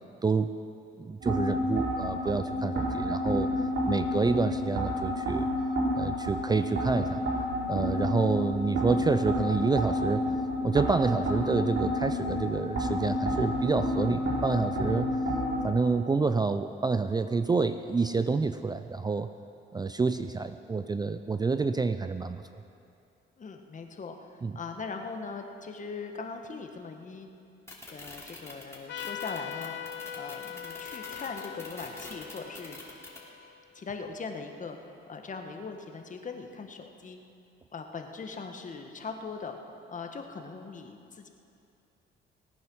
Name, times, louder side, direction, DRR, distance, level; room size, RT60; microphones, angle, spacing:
voice 1, 0.2-0.5 1.0-3.5 3.9-5.5 5.9-7.2 7.7-10.2 10.6-15.1 15.6-19.3 19.7-22.4 24.4-24.6, right 4 dB, 20° right, 10 dB, 0.4 m, -28 dB
sound 1, 1.2-15.6, left 1 dB, 65° right, 3.7 m, -30 dB
voice 2, 23.4-27.3 27.9-29.8 30.1-32.8 33.7-37.2 37.7-39.6 39.9-41.3, left 4 dB, 40° left, 4 dB, 1.5 m, -40 dB
sound 2, 27.7-33.2, left 2 dB, 15° left, 2.9 m, -44 dB
Trumpet, 28.9-34.0, left 10 dB, 65° left, 0.8 m, -42 dB
18.5 x 9.3 x 6.2 m, 2.6 s
cardioid pair, 90°, 20 cm